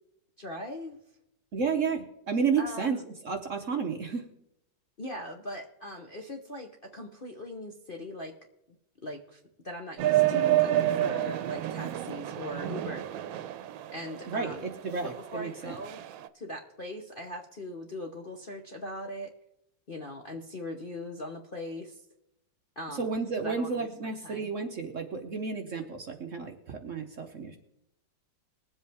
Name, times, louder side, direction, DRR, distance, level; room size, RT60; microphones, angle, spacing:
voice 1, 0.4-1.0 2.6-3.0 5.0-8.4 9.0-13.1 13.9-14.7 15.0-16.0 16.3-19.3 19.9-22.0 22.8-24.5, left 1 dB, 40° left, 0 dB, 0.8 m, -40 dB
voice 2, 1.5-3.0 3.2-4.2 14.3-15.8 23.0-27.6, right 5 dB, 50° right, 4 dB, 1.0 m, -31 dB
sound 1, 10.0-16.3, right 13 dB, 85° right, 1.4 m, -29 dB
21.0 x 7.9 x 3.4 m, 0.84 s
omnidirectional pair, 2.1 m